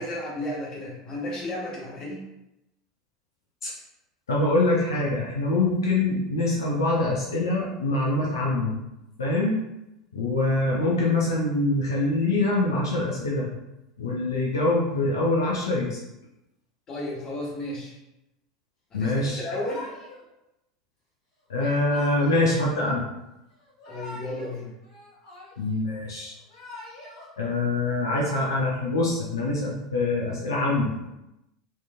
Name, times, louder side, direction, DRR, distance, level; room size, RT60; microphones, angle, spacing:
voice 1, 0.0-2.2 16.9-18.0 18.9-19.8 23.9-24.7, left 1 dB, 30° left, -4 dB, 1.2 m, -33 dB
voice 2, 4.3-8.8 9.2-9.6 10.1-13.5 14.0-16.0 18.9-19.4 21.5-23.0 25.6-26.4 27.4-31.1, left 2 dB, 70° left, -4 dB, 0.6 m, -24 dB
Yell / Crying sobbing, 19.4-20.2 21.6-22.6 23.6-24.5 24.8-25.8 26.3-27.3, left 1 dB, 55° left, 1.4 m, -43 dB
4.4 x 3.0 x 2.3 m, 0.92 s
figure-of-eight pair, 80°, 2 cm